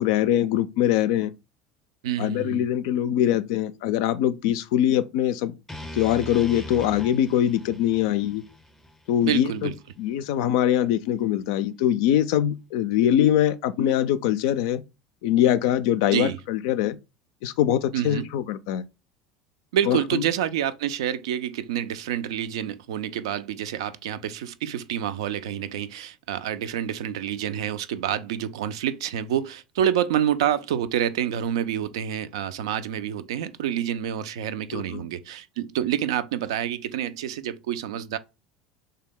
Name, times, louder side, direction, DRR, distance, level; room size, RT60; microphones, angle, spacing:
voice 1, 0.0-1.3 2.2-5.5 5.9-8.4 9.1-9.7 10.0-14.8 15.2-17.0 17.4-18.8 19.9-20.2 34.7-35.0, left 11 dB, 65° left, 0.3 m, -23 dB
voice 2, 2.0-2.7 9.2-9.7 16.1-16.4 17.9-18.3 19.7-38.2, right 10 dB, 70° right, 0.3 m, -28 dB
sound 1, 5.7-9.8, left 1 dB, 5° left, 0.6 m, -41 dB
3.3 x 2.7 x 3.6 m
hypercardioid pair, 70°, 3 cm